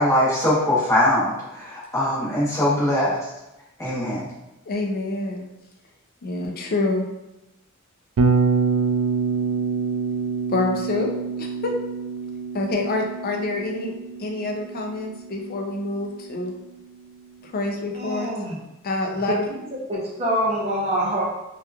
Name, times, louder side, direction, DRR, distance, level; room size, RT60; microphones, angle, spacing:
voice 1, 0.0-3.2 3.8-4.3, left 1 dB, 15° left, -8 dB, 0.9 m, -21 dB
voice 2, 4.7-5.5 6.2-7.1 10.5-11.1 11.4-11.7 12.5-13.9 14.2-16.5 17.4-18.3 18.8-19.4, left 2 dB, 45° left, 2 dB, 0.4 m, -26 dB
Bass guitar, 8.2-16.2, right 5 dB, 75° right, 0.3 m, -26 dB
voice 3, 17.9-18.6 19.3-19.6 19.9-21.3, equal, 30° right, -5 dB, 0.7 m, -25 dB
2.9 x 2.3 x 2.3 m, 0.95 s
head